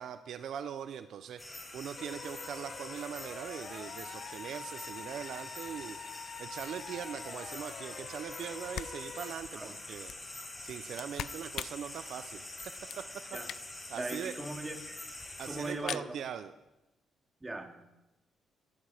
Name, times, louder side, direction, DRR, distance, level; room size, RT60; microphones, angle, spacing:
voice 1, 0.0-6.0 6.4-10.1 10.6-13.4 13.9-14.4 15.4-16.5, right 8 dB, 70° right, 10 dB, 0.7 m, -41 dB
sound 1, 1.4-15.7, left 2 dB, 20° left, 4.0 m, -46 dB
sound 2, 2.0-9.3, left 6 dB, 55° left, 0.9 m, -46 dB
sound 3, 8.4-8.5 8.7-13.9 14.3-14.4 14.6-14.7 14.8-15.3 15.6-16.1, left 10 dB, 70° left, 0.4 m, -44 dB
voice 2, 13.9-14.8 15.4-16.2 17.4-17.7, right 2 dB, 15° right, 4 dB, 2.5 m, -39 dB
17.0 x 15.5 x 5.0 m, 0.97 s
cardioid pair, 90°, 0 cm